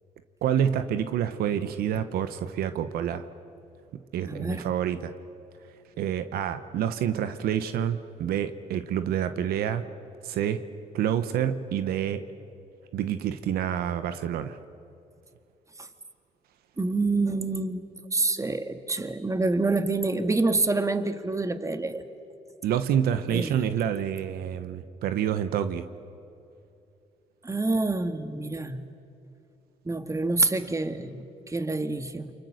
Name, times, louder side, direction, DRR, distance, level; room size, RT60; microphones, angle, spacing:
voice 1, 0.4-3.3 4.1-5.1 6.0-9.8 10.2-10.6 10.9-12.2 12.9-14.6 22.6-25.9, right 9 dB, 85° right, 10 dB, 1.0 m, -28 dB
voice 2, 4.3-4.6 16.8-17.8 18.1-22.0 23.3-23.6 27.4-28.9 29.9-32.3, right 3 dB, 20° right, 9 dB, 1.7 m, -27 dB
29.0 x 24.0 x 6.5 m, 2.6 s
supercardioid pair, 70°, 15 cm